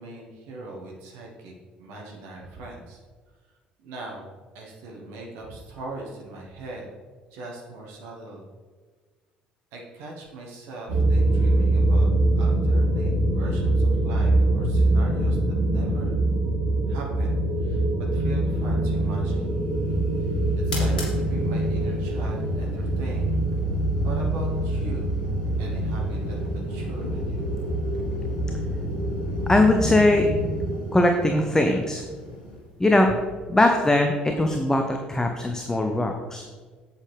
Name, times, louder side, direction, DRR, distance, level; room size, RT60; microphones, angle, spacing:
voice 1, 0.0-3.0 3.8-6.9 7.3-8.5 9.7-12.1 12.3-16.2 16.9-19.5 20.2-20.4 20.6-23.4 24.0-25.1 25.6-27.4, right 2 dB, 60° right, -1 dB, 1.3 m, -40 dB
sound 1, 10.9-30.8, right 1 dB, 80° right, 2.1 m, -24 dB
sound 2, 18.9-34.2, left 1 dB, 80° left, 1.6 m, -40 dB
voice 2, 29.5-30.3 30.9-32.0 32.8-33.2 33.5-36.4, left 1 dB, 10° left, 4 dB, 0.8 m, -21 dB
8.2 x 7.8 x 3.5 m, 1.5 s
figure-of-eight pair, 55°, 4 cm